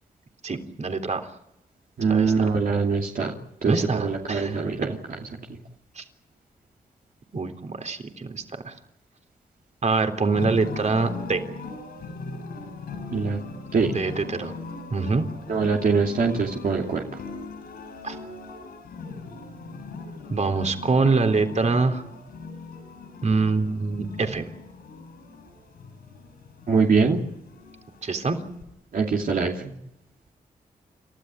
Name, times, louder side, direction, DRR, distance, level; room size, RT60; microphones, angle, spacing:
voice 1, 0.4-1.2 2.1-2.3 3.6-4.6 6.0-6.1 7.3-8.7 9.8-11.4 13.9-14.5 14.9-15.2 18.0-18.2 20.3-22.0 23.2-24.4 28.0-28.4, right 4 dB, 50° right, 5 dB, 3.6 m, -24 dB
voice 2, 2.0-3.3 3.6-5.2 5.5-5.6 13.1-13.4 13.7-13.9 15.5-17.2 26.7-27.2 28.9-29.7, right 4 dB, 65° right, 0 dB, 2.8 m, -23 dB
sound 1, 10.3-28.6, left 3 dB, 85° left, 7.5 m, -39 dB
29.5 x 13.5 x 9.7 m, 0.85 s
cardioid pair, 60°, 15 cm